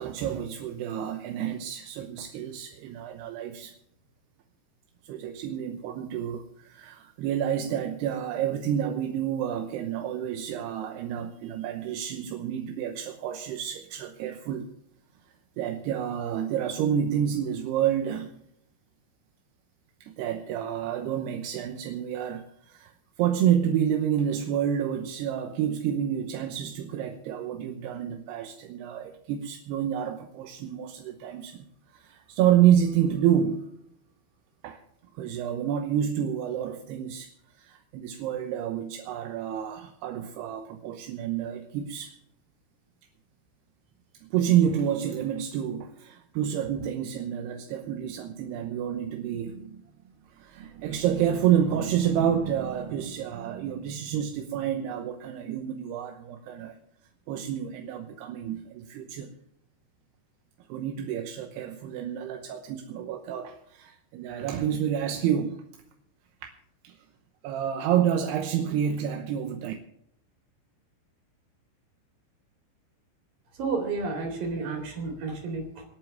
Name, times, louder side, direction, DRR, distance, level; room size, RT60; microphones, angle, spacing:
voice 1, 0.0-3.8 5.0-14.7 15.6-18.4 20.0-22.9 23.2-31.7 31.9-33.7 34.6-34.8 35.2-37.3 37.6-42.2 44.2-49.8 50.3-56.8 57.3-59.3 60.7-65.6 66.4-66.5 66.8-67.0 67.4-69.7, right 9 dB, 75° right, 2.8 m, -29 dB
voice 2, 73.5-75.8, right 4 dB, 50° right, 5.0 m, -31 dB
27.5 x 9.2 x 3.5 m
omnidirectional pair, 5.3 m